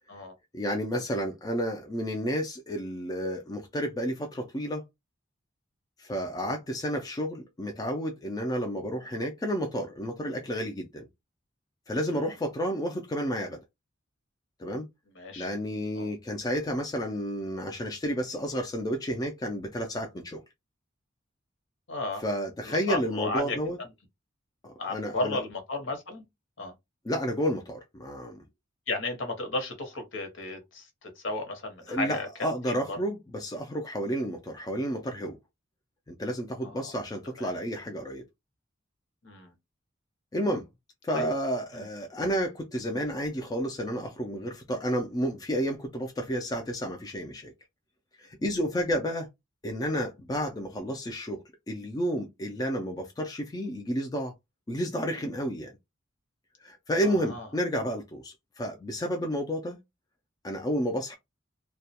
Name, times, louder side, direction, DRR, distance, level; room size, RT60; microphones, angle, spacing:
voice 1, 0.5-4.8 6.0-11.1 11.9-13.6 14.6-14.9 15.4-20.4 22.2-23.8 24.6-25.4 27.0-28.4 31.9-35.4 36.1-38.2 40.3-40.7 41.0-47.5 48.2-49.3 49.6-54.3 54.7-55.7 56.6-59.8 60.4-61.2, equal, 20° left, 0.3 m, -31 dB
voice 2, 15.2-15.5 16.0-16.1 21.9-22.2 22.6-23.9 24.8-26.2 26.6-26.7 28.9-32.5 32.9-33.0 36.6-36.9 37.4-37.5 39.2-39.5 41.1-41.3 41.7-41.9 57.3-57.4, left 2 dB, 65° left, 0.8 m, -34 dB
2.3 x 2.1 x 2.7 m
head